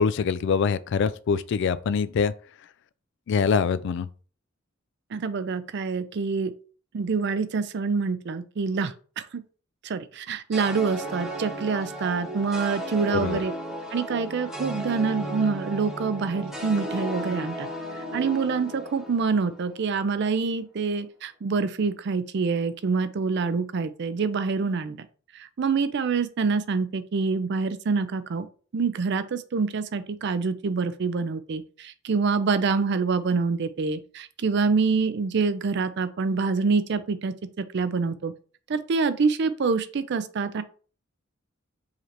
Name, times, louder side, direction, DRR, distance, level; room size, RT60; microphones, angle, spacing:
voice 1, 0.0-2.3 3.3-4.1 13.1-13.4, left 6 dB, 60° left, 0.3 m, -24 dB
voice 2, 5.1-6.5 6.9-9.3 9.8-13.5 13.9-17.7 18.1-25.0 25.3-28.5 28.7-38.3 38.7-40.6, right 4 dB, 60° right, 0.4 m, -26 dB
sound 1, 10.5-19.8, right 1 dB, ahead, 0.9 m, -35 dB
4.8 x 3.2 x 2.9 m
head